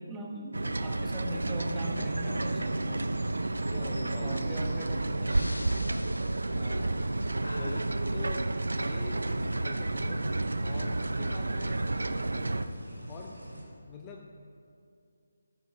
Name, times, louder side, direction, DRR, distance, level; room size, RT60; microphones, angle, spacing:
voice 1, 0.0-3.1 3.7-5.7, right 1 dB, 10° right, 0 dB, 1.3 m, -41 dB
sound 1, 0.5-12.7, right 2 dB, 70° right, 0.6 m, -31 dB
sound 2, 0.6-13.6, right 1 dB, 90° right, 3.0 m, -45 dB
voice 2, 3.6-4.9 6.6-7.1 7.5-10.3 10.6-12.8 13.1-13.4 13.9-14.3, left 4 dB, 20° left, 1 dB, 0.8 m, -46 dB
Breathing, 5.2-7.1 7.4-8.5, left 1 dB, 80° left, 0.7 m, -44 dB
15.0 x 13.0 x 3.7 m, 2.4 s
figure-of-eight pair, 150°, 0 cm